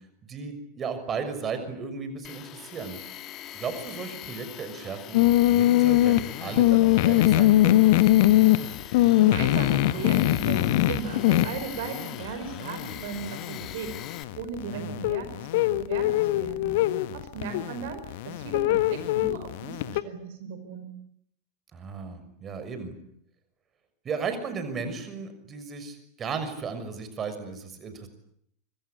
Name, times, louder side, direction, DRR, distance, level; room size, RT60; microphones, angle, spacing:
voice 1, 0.3-3.0 3.5-7.9 14.7-15.1 21.7-22.9 24.0-28.1, right 5 dB, 30° right, 9 dB, 6.3 m, -35 dB
Tools, 2.2-14.2, left 12 dB, 40° left, 1.7 m, -42 dB
sound 1, 5.1-20.0, left 15 dB, 55° left, 1.4 m, -22 dB
voice 2, 8.7-10.6 10.9-16.7 17.1-20.9, right 6 dB, 55° right, 8 dB, 5.0 m, -37 dB
26.0 x 25.5 x 8.6 m, 0.71 s
figure-of-eight pair, 85°, 0 cm